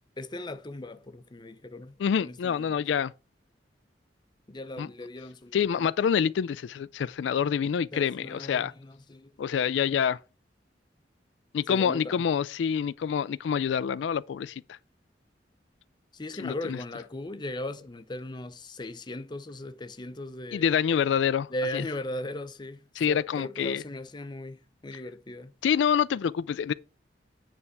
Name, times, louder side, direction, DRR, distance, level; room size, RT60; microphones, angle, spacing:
voice 1, 0.2-2.7 4.5-5.9 7.9-9.3 11.7-12.2 16.1-20.8 21.5-25.5, left 1 dB, 25° left, 0.7 m, -38 dB
voice 2, 2.0-3.1 4.8-4.9 5.5-8.7 9.4-10.2 11.5-14.8 16.4-16.8 20.5-21.8 23.0-23.8 25.6-26.7, left 7 dB, 90° left, 0.3 m, -27 dB
9.5 x 3.4 x 6.7 m
head